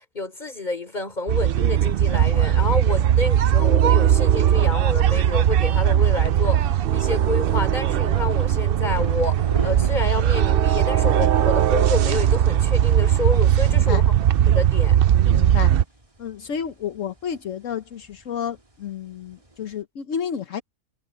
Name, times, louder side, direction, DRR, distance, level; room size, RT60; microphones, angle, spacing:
voice 1, 0.0-14.1 14.5-15.0, left 3 dB, 35° left, 3.6 m, -29 dB
sound 1, 1.3-15.8, right 10 dB, 60° right, 0.7 m, -19 dB
sound 2, 5.4-19.8, right 2 dB, 25° right, 2.5 m, -41 dB
voice 2, 13.6-14.1 15.3-15.7 16.2-20.6, left 8 dB, 75° left, 1.3 m, -31 dB
omnidirectional pair, 1.3 m